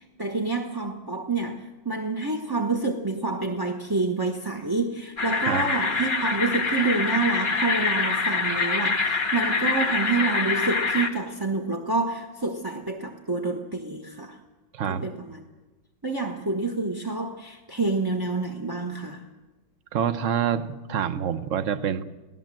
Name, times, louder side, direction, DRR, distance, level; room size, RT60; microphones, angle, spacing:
voice 1, 0.0-14.4 14.9-15.4 16.0-19.2, right 3 dB, 15° right, 4 dB, 1.0 m, -28 dB
sound 1, 5.2-11.1, left 4 dB, 30° left, 1.5 m, -25 dB
voice 2, 14.7-15.1 19.9-22.0, right 8 dB, 50° right, 12 dB, 1.1 m, -26 dB
27.0 x 17.5 x 7.6 m, 1.2 s
omnidirectional pair, 2.1 m